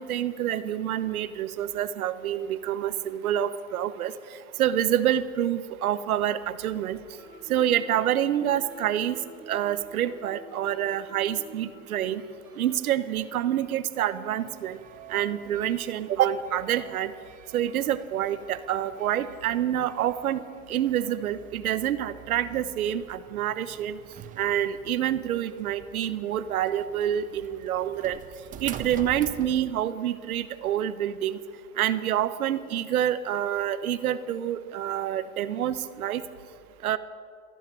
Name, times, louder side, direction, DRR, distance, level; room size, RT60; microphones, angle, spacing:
voice 1, 0.0-4.1 4.6-7.0 7.5-9.2 9.5-12.2 12.6-14.8 15.1-17.1 17.5-20.4 20.7-24.0 24.4-28.2 28.6-31.4 31.8-36.2 36.8-37.0, right 11 dB, 85° right, 14 dB, 1.1 m, -27 dB
Guitar, 7.2-14.9, right 1 dB, 5° right, 4.5 m, -50 dB
sound 1, 14.4-29.8, right 9 dB, 20° right, 0.7 m, -47 dB
14.5 x 11.5 x 8.6 m, 2.1 s
hypercardioid pair, 135°, 42 cm